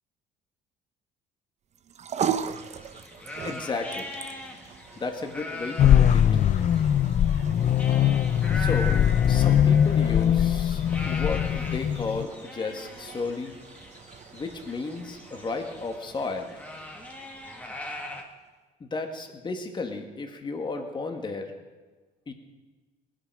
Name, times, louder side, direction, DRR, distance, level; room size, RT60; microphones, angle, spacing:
sound 1, 1.7-18.2, right 8 dB, 40° right, 0.7 m, -40 dB
sound 2, 2.3-18.2, left 1 dB, 10° left, 2.0 m, -41 dB
voice 1, 3.4-4.1 5.0-6.4 8.5-8.9 9.3-13.6 14.3-16.5 18.8-21.5 22.3-22.4, left 3 dB, 30° left, 4 dB, 2.0 m, -33 dB
sound 3, 5.8-12.2, left 9 dB, 45° left, 0.5 m, -21 dB
19.0 x 10.0 x 6.3 m, 1.3 s
cardioid pair, 110°, 17 cm